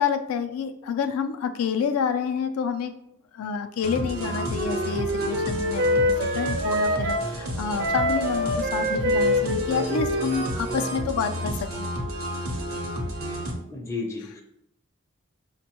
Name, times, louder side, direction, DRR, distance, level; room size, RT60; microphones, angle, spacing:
voice 1, 0.0-2.9 3.3-6.0 6.3-11.9 14.2-14.3, left 6 dB, 80° left, 7 dB, 0.3 m, -28 dB
sound 1, 3.8-13.5, equal, 85° right, 0.8 m, -31 dB
Wind instrument woodwind instrument, 4.1-7.3 7.8-11.1, left 1 dB, 55° right, 0.5 m, -26 dB
voice 2, 13.7-14.4, left 3 dB, 15° left, 1 dB, 0.4 m, -32 dB
5.2 x 2.2 x 2.8 m, 0.81 s
head